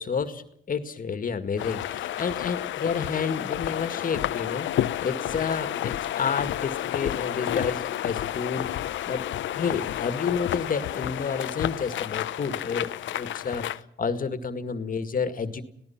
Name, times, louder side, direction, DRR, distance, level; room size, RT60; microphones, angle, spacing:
voice 1, 0.0-4.7 5.0-8.7 9.0-9.3 9.5-13.7 14.0-15.6, left 5 dB, 45° left, 10 dB, 2.0 m, -30 dB
sound 1, 1.6-13.8, left 12 dB, 70° left, 0.8 m, -31 dB
26.5 x 17.5 x 5.9 m, 0.70 s
cardioid pair, 90°, 20 cm